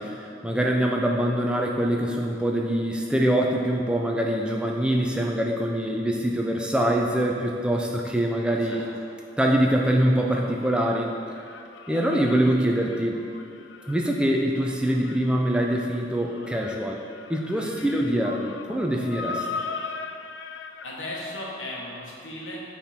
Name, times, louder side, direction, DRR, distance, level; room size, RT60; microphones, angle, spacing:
voice 1, 0.0-8.8 9.4-11.1 11.9-13.2 13.9-17.0 17.3-19.5, right 1 dB, 5° right, 0 dB, 0.4 m, -24 dB
sound 1, 7.2-9.2 9.5-21.0, left 4 dB, 70° left, 0.4 m, -40 dB
voice 2, 8.5-8.8 17.5-17.9 20.8-22.7, left 1 dB, 90° left, -4 dB, 1.3 m, -37 dB
8.1 x 3.7 x 4.2 m, 2.4 s
head